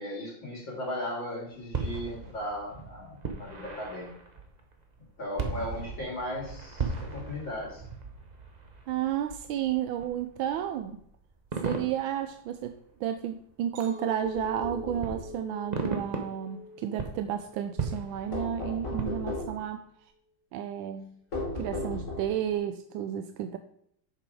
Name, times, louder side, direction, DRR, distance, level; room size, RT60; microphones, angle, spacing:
voice 1, 0.0-4.1 5.2-7.8, left 1 dB, 70° left, -2 dB, 3.0 m, -37 dB
sound 1, 1.5-13.5 14.2-14.3 15.0-16.6 16.9-19.7, right 4 dB, 40° right, 0.6 m, -37 dB
voice 2, 8.9-11.0 11.6-19.8 20.5-21.1 21.5-23.6, right 10 dB, 85° right, 7 dB, 1.4 m, -32 dB
Chink clink, 13.8-18.1 18.6-19.0, left 2 dB, 65° right, 1.6 m, -43 dB
sound 2, 14.3-15.3 18.3-19.6 21.3-22.5, left 2 dB, 40° left, 2.8 m, -36 dB
6.9 x 6.1 x 4.7 m, 0.68 s
omnidirectional pair, 2.1 m